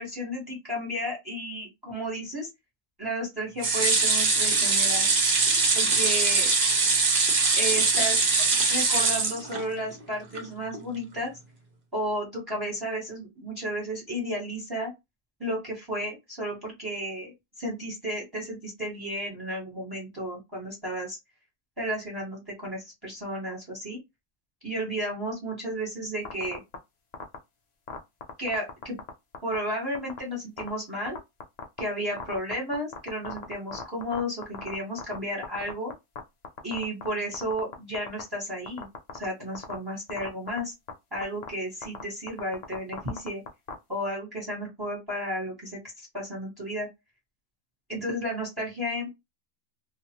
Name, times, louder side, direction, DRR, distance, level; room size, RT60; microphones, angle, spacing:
voice 1, 0.0-2.5 3.0-5.1 5.7-6.5 7.5-8.3 8.7-11.3 11.9-14.9 15.4-21.2 21.8-24.0 24.6-26.6 28.4-29.0 29.4-31.2 31.8-35.9 36.6-38.9 39.1-40.7 41.1-43.4 43.9-46.9 47.9-49.1, equal, 20° right, -4 dB, 1.3 m, -33 dB
sound 1, 3.6-9.9 10.3-10.4 10.7-10.8, right 4 dB, 50° right, 1.0 m, -22 dB
sound 2, 26.2-26.8 27.1-27.4 27.9-29.1 29.3-29.6 29.9-30.2 30.6-30.7 31.1-31.8 32.2-35.2 35.4-36.2 36.4-37.1 37.3-38.2 38.7-39.2 39.5-39.7 40.1-40.6 40.9-41.0 41.2-41.5 41.8-42.0 42.3-43.7, left 6 dB, 55° left, 0.4 m, -36 dB
2.5 x 2.4 x 2.9 m, 0.21 s
omnidirectional pair, 1.4 m